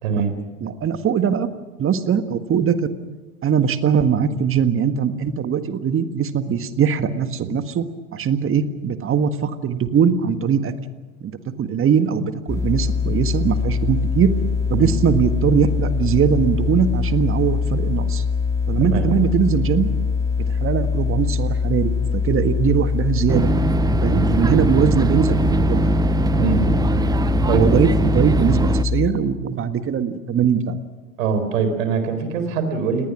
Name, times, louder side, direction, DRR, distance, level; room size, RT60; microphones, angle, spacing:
voice 1, 0.0-0.3 14.7-14.9 18.9-19.1 24.1-24.3 26.4-27.0 27.5-27.8 31.2-33.1, right 5 dB, 70° right, 8 dB, 4.4 m, -23 dB
voice 2, 0.6-1.5 1.8-2.8 3.4-7.9 8.1-10.7 11.2-14.3 14.7-18.2 18.7-19.9 20.6-23.5 24.0-25.8 27.5-30.8, right 7 dB, 30° right, 10 dB, 1.6 m, -21 dB
sound 1, 12.5-29.1, left 5 dB, 10° left, 3.2 m, -23 dB
sound 2, 23.3-28.8, right 4 dB, 10° right, 0.6 m, -22 dB
30.0 x 19.0 x 6.2 m, 1.2 s
hypercardioid pair, 80°, 41 cm